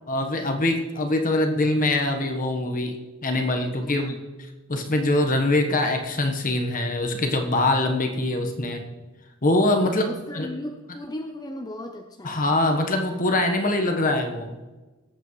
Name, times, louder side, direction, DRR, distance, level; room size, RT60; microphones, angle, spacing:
voice 1, 0.1-2.9 3.2-4.1 4.7-8.8 9.4-10.1 10.3-10.5 12.2-14.5, left 2 dB, 40° left, 5 dB, 1.2 m, -23 dB
voice 2, 3.8-4.2 9.8-12.4, left 1 dB, 20° left, 3 dB, 0.6 m, -36 dB
18.5 x 8.1 x 3.2 m, 1.2 s
head